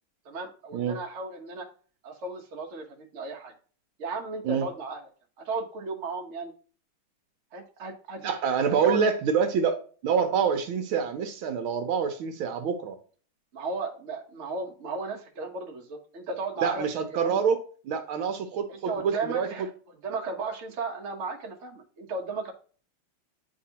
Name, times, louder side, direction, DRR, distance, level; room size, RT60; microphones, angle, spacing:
voice 1, 0.2-1.7 2.0-3.5 4.0-5.0 5.4-6.5 7.5-8.3 8.8-9.0 13.5-16.9 17.1-17.4 18.7-19.7 20.0-22.5, right 3 dB, 45° right, 1 dB, 1.0 m, -35 dB
voice 2, 8.2-12.9 16.6-17.6 17.8-19.5, right 6 dB, 75° right, 6 dB, 1.5 m, -26 dB
9.5 x 3.5 x 2.8 m, 0.41 s
omnidirectional pair, 2.4 m